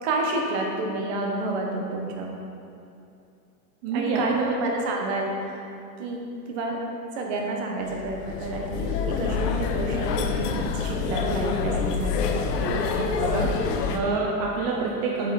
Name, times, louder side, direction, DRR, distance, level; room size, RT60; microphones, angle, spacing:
voice 1, 0.0-2.3 3.9-5.6 6.0-6.2 6.5-6.8 7.1-10.5 10.7-12.4, right 2 dB, 45° right, 0 dB, 1.3 m, -29 dB
voice 2, 3.8-4.5 12.5-13.5 13.9-15.3, right 3 dB, 25° right, -3 dB, 0.5 m, -27 dB
sound 1, 7.9-14.0, left 5 dB, 85° left, 0.9 m, -27 dB
8.3 x 5.9 x 4.3 m, 2.6 s
supercardioid pair, 160°, 47 cm